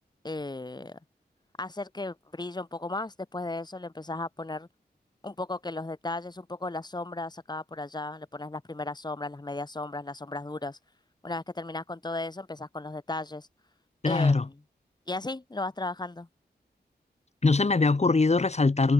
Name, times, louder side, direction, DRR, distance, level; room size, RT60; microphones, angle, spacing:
voice 1, 0.2-1.0 1.6-4.7 5.2-10.8 11.2-13.5 14.1-14.6 15.1-16.3, left 2 dB, 25° left, 2.1 m, -35 dB
voice 2, 14.0-14.4 17.4-18.9, left 3 dB, 40° left, 1.9 m, -22 dB
wide cardioid pair, 95°, 17 cm